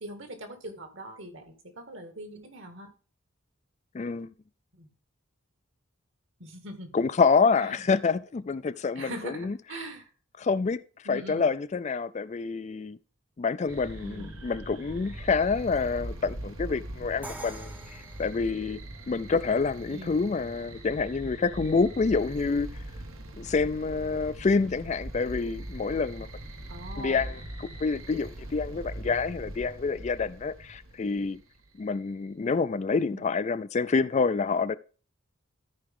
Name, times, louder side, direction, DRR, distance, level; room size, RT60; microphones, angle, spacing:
voice 1, 0.0-2.9 4.7-4.9 6.4-7.0 7.6-7.9 9.0-10.1 11.0-11.5 14.0-14.3 19.9-20.2 26.7-27.4 33.0-33.3, right 1 dB, 60° right, 2.0 m, -42 dB
voice 2, 3.9-4.3 6.9-9.5 10.4-10.8 11.0-13.0 13.4-18.8 19.1-22.7 23.4-26.3 27.0-31.4 31.8-34.7, left 4 dB, 35° left, 0.3 m, -27 dB
sound 1, 13.7-31.6, right 1 dB, 80° right, 1.4 m, -41 dB
Crash cymbal, 17.2-19.1, right 2 dB, 5° right, 0.6 m, -45 dB
13.5 x 4.8 x 3.6 m
head